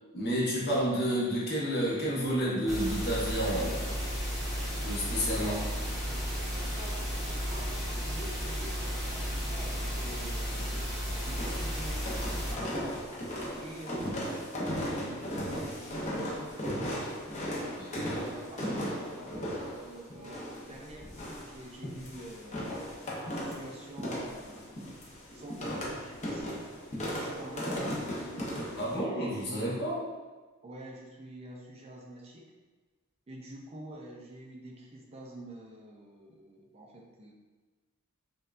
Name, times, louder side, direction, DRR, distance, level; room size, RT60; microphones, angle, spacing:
voice 1, 0.1-4.1 4.8-5.6 17.8-17.9 28.8-30.0, equal, 50° left, -6 dB, 1.1 m, -30 dB
sound 1, 2.7-12.5, equal, ahead, 0.9 m, -33 dB
voice 2, 6.0-10.9 11.2-12.3 12.7-13.0 13.6-16.7 17.5-17.8 18.0-24.7 25.3-26.6 27.2-29.2 29.4-29.8 30.6-32.5 33.3-37.3, right 1 dB, 30° right, -1 dB, 0.4 m, -47 dB
sound 2, 11.2-29.0, equal, 35° left, 0.7 m, -37 dB
5.3 x 2.3 x 2.5 m, 1.3 s
head